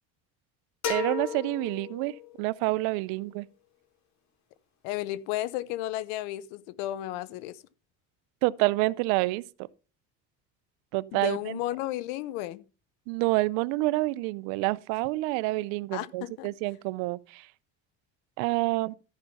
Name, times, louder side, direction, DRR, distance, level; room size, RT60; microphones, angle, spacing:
sound 1, 0.8-2.6, left 8 dB, 55° left, 3.3 m, -34 dB
voice 1, 0.9-3.5 8.4-9.4 10.9-11.6 13.1-17.5 18.4-18.9, right 21 dB, 85° right, 0.6 m, -28 dB
voice 2, 4.8-7.6 11.1-12.6 15.9-16.5, left 15 dB, 90° left, 0.9 m, -33 dB
13.5 x 5.8 x 5.5 m
cardioid pair, 110°, 33 cm